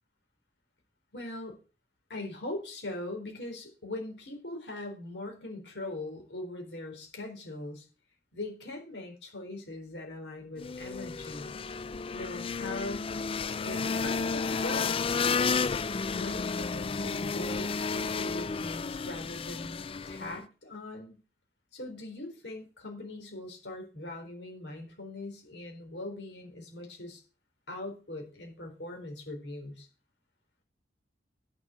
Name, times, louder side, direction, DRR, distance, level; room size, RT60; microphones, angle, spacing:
voice 1, 1.1-1.6 2.1-7.8 8.3-11.7 12.1-13.1 13.6-15.0 16.1-19.8 20.1-21.2 21.7-27.2 27.7-29.9, left 2 dB, 75° left, 2 dB, 4.1 m, -41 dB
sound 1, 10.6-20.4, left 5 dB, 30° left, 0.4 m, -32 dB
10.5 x 7.1 x 6.3 m, 0.35 s
head